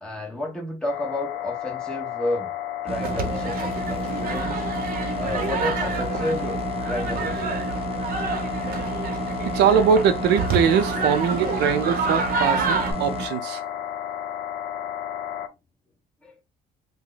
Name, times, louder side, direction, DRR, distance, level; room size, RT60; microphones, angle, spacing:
voice 1, 0.0-2.5 2.8-4.7 5.1-7.5 16.2-16.3, left 1 dB, 5° left, 1.3 m, -31 dB
sound 1, 0.9-15.5, left 11 dB, 55° left, 0.6 m, -32 dB
sound 2, 2.9-13.3, right 4 dB, 35° right, 0.5 m, -32 dB
sound 3, 3.0-12.9, right 4 dB, 60° right, 0.9 m, -29 dB
voice 2, 9.5-13.6, right 7 dB, 85° right, 0.6 m, -21 dB
2.9 x 2.2 x 3.9 m
cardioid pair, 110°, 17 cm